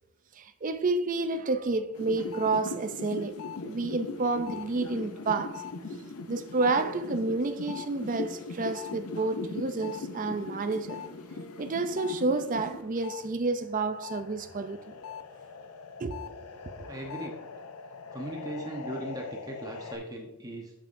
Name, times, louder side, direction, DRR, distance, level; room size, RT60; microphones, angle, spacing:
voice 1, 0.4-5.6 6.3-11.0 11.6-14.9 16.0-16.4 16.8-16.9, right 3 dB, 35° right, 0.4 m, -30 dB
sound 1, 1.9-13.2 13.6-20.0, left 4 dB, 80° left, 0.6 m, -40 dB
voice 2, 16.9-17.4 18.1-20.7, right 1 dB, 15° right, 0.9 m, -38 dB
8.9 x 7.4 x 2.6 m
head